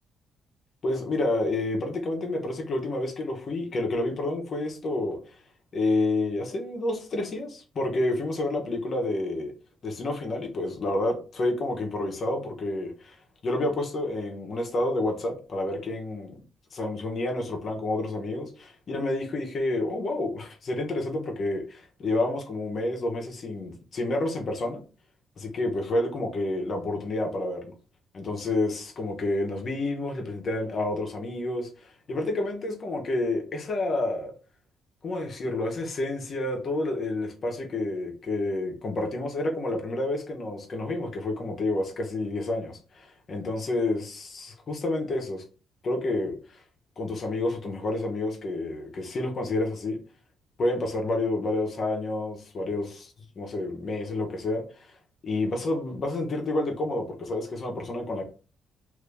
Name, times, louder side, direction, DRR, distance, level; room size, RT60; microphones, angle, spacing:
voice 1, 0.8-5.4 5.7-9.5 9.8-13.2 13.4-16.3 16.7-24.8 25.4-27.7 28.1-34.3 35.0-45.4 45.8-46.6 47.0-50.0 50.6-54.9 55.2-58.2, left 2 dB, 50° left, 1.0 m, -29 dB
2.8 x 2.7 x 3.4 m
cardioid pair, 90°, 0 cm